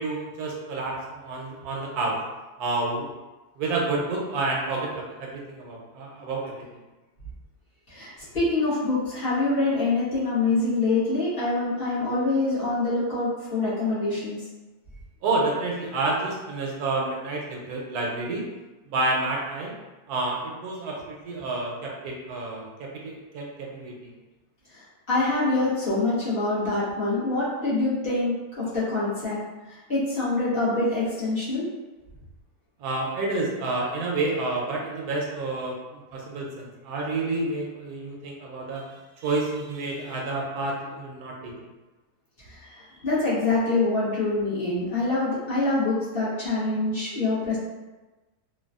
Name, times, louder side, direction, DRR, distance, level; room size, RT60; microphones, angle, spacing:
voice 1, 0.0-2.2 2.6-3.1 3.6-6.8 15.2-18.4 18.9-19.7 20.1-24.1 32.8-38.8 39.2-41.5, right 2 dB, 75° right, -2 dB, 1.1 m, -29 dB
voice 2, 7.9-14.4 25.1-29.4 29.9-31.6 42.6-47.6, left 2 dB, 40° left, -10 dB, 1.1 m, -25 dB
3.2 x 2.2 x 2.4 m, 1.1 s
omnidirectional pair, 1.7 m